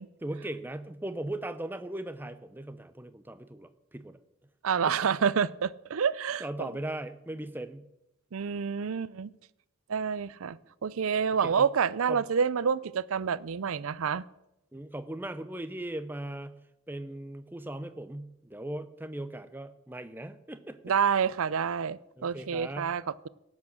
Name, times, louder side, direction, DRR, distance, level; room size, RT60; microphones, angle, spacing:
voice 1, 0.2-4.2 4.8-5.1 6.4-7.9 11.4-11.7 12.1-12.2 14.7-20.8 22.2-22.9, right 1 dB, 10° right, 12 dB, 0.6 m, -38 dB
voice 2, 4.6-6.7 8.3-9.3 9.9-10.6 10.8-14.2 20.9-23.3, right 6 dB, 75° right, 19 dB, 0.5 m, -28 dB
12.5 x 8.5 x 7.2 m, 0.89 s
head